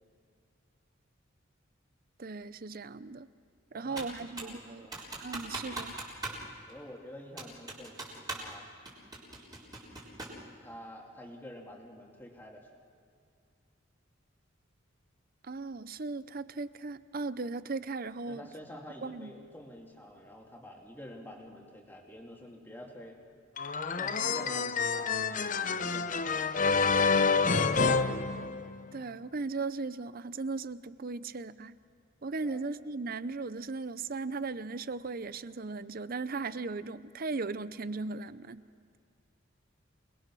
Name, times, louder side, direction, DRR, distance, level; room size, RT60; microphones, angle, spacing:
voice 1, 2.2-3.3 3.7-4.9 5.2-6.0 15.4-18.5 19.0-19.3 28.9-31.8 32.2-38.6, right 3 dB, 45° right, 15 dB, 0.6 m, -37 dB
voice 2, 3.7-5.0 6.7-8.7 10.6-12.7 18.3-23.2 23.9-25.2 25.8-28.1 32.4-32.6, left 1 dB, 10° left, 0 dB, 2.5 m, -49 dB
Computer keyboard, 4.0-4.6 4.9-6.4 6.7-6.8 7.4-8.5 8.9-10.4, right 2 dB, 20° right, 4.0 m, -40 dB
sound 1, 23.6-29.0, left 4 dB, 40° left, 0.7 m, -28 dB
28.0 x 20.5 x 6.2 m, 2.4 s
head